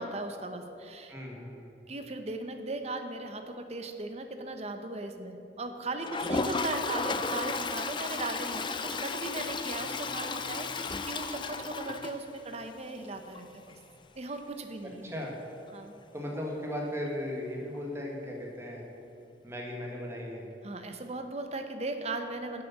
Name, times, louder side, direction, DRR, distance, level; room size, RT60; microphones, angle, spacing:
voice 1, 0.0-1.1 1.9-13.7 14.1-15.1 15.7-16.0 20.6-22.6, right 2 dB, 35° right, 7 dB, 0.9 m, -38 dB
voice 2, 1.1-1.7 15.0-15.3 16.1-18.8 19.4-20.5, left 1 dB, 15° right, -1 dB, 1.8 m, -37 dB
Toilet flush, 6.0-12.7 13.0-13.1 13.3-13.4 13.7-13.8 16.3-16.4 17.7-17.8, left 4 dB, 25° left, 0.5 m, -34 dB
10.0 x 7.7 x 7.3 m, 2.8 s
head